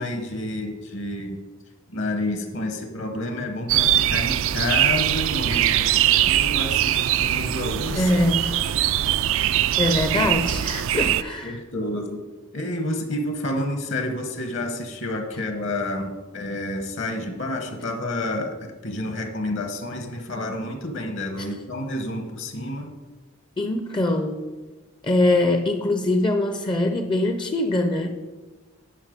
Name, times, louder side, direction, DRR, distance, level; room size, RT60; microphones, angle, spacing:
voice 1, 0.0-1.4 1.9-8.1 11.4-12.2 12.5-22.9, left 1 dB, 55° left, 6 dB, 1.0 m, -29 dB
sound 1, 3.7-11.2, right 12 dB, 65° right, 0.3 m, -22 dB
voice 2, 8.0-8.6 9.8-11.6 21.4-21.5 23.6-24.5 25.0-28.1, left 1 dB, 20° left, 6 dB, 0.5 m, -23 dB
11.5 x 5.5 x 5.1 m, 1.3 s
head